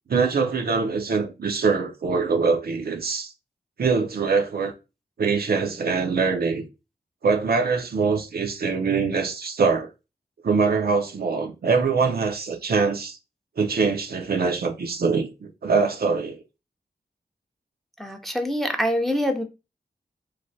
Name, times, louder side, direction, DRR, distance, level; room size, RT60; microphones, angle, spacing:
voice 1, 0.1-3.3 3.8-4.7 5.2-6.7 7.2-9.9 10.4-13.2 13.6-16.4, right 4 dB, 65° right, 0.5 m, -23 dB
voice 2, 18.0-19.4, equal, ahead, 0.5 m, -25 dB
3.2 x 2.1 x 2.6 m
cardioid pair, 50°, 17 cm